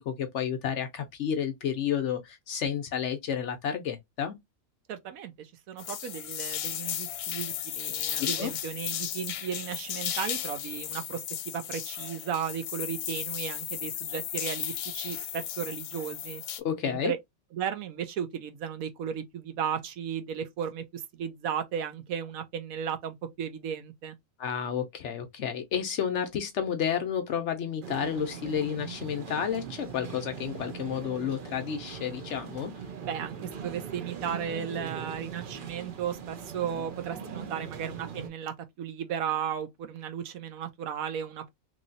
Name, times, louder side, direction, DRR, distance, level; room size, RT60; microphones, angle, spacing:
voice 1, 0.0-4.4 8.2-8.5 16.6-17.1 24.4-32.7, left 8 dB, 65° left, 0.8 m, -31 dB
voice 2, 4.9-11.2 11.5-16.4 16.8-17.2 17.5-24.1 33.0-41.5, right 8 dB, 75° right, 1.1 m, -35 dB
sound 1, 5.8-16.6, left 11 dB, 90° left, 1.1 m, -35 dB
sound 2, 27.8-38.3, right 6 dB, 55° right, 0.6 m, -41 dB
3.1 x 2.7 x 2.5 m
omnidirectional pair, 1.5 m